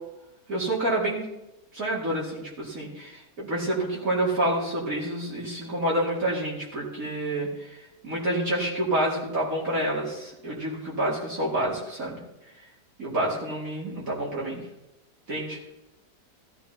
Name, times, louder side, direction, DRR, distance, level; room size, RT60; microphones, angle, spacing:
voice 1, 0.5-1.3 1.7-12.2 13.0-14.6 15.3-15.6, right 1 dB, 55° right, -5 dB, 2.8 m, -28 dB
14.5 x 13.5 x 2.9 m, 0.91 s
omnidirectional pair, 1.8 m